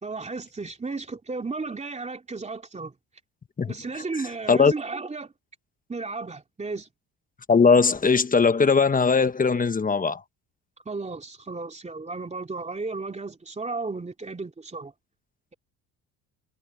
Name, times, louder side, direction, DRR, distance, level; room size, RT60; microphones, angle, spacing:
voice 1, 0.0-2.9 3.7-5.3 5.9-6.9 10.8-14.9, right 3 dB, 20° right, 3.0 m, -34 dB
voice 2, 7.5-10.2, left 5 dB, 20° left, 1.2 m, -19 dB
cardioid pair, 100°, 37 cm